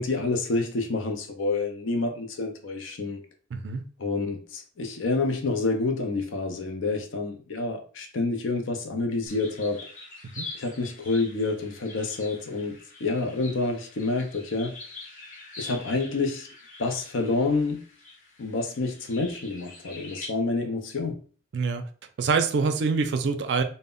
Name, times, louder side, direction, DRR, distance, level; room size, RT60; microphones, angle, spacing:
voice 1, 0.0-3.2 4.0-9.8 10.5-14.8 15.6-16.5 16.8-17.8 18.4-21.2, left 3 dB, 80° left, 0.5 m, -28 dB
voice 2, 3.5-3.8 10.4-10.5 21.5-21.8 22.2-23.6, right 4 dB, 60° right, 0.3 m, -25 dB
sound 1, 9.3-20.3, left 3 dB, 40° left, 0.9 m, -45 dB
2.1 x 2.0 x 3.6 m
head